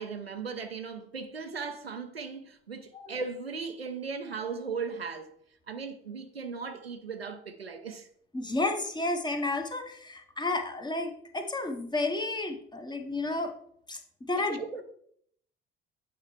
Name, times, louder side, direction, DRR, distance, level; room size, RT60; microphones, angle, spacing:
voice 1, 0.0-5.4 5.7-8.1 14.4-14.8, right 5 dB, 85° right, 0.6 m, -37 dB
voice 2, 8.3-13.5 13.9-14.8, left 2 dB, 15° left, 1.1 m, -32 dB
9.0 x 5.6 x 3.2 m
figure-of-eight pair, 55°, 29 cm